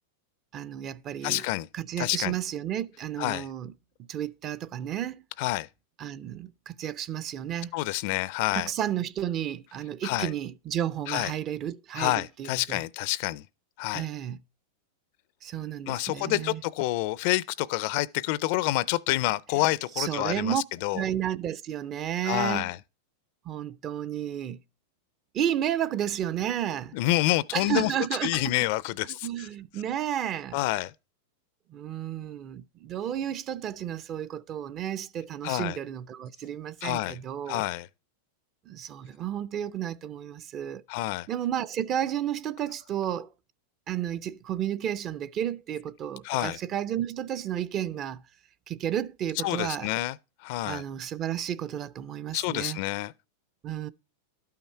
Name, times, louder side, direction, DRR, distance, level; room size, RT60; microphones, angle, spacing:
voice 1, 0.5-1.5 1.7-3.7 4.1-5.2 6.0-7.7 8.5-12.8 13.9-14.4 15.4-16.6 19.5-19.6 20.0-20.6 20.9-22.7 23.4-24.6 25.3-26.9 27.5-28.7 29.1-30.6 31.7-37.6 38.7-40.8 41.3-43.3 43.9-48.2 48.7-49.9 50.6-52.8 53.6-53.9, right 10 dB, 30° right, 0.5 m, -32 dB
voice 2, 1.2-1.7 2.0-2.4 3.2-3.5 5.4-5.7 7.7-8.7 10.0-10.3 11.1-11.3 12.0-13.4 13.8-14.0 15.9-20.5 20.8-21.0 22.2-22.8 26.9-27.9 28.2-29.5 30.5-30.9 35.4-35.8 36.8-37.2 37.5-37.9 40.9-41.3 46.2-46.6 49.4-50.2 50.4-50.8 52.3-53.1, left 17 dB, 55° left, 0.4 m, -28 dB
12.0 x 5.7 x 4.4 m
supercardioid pair, 140°, 0 cm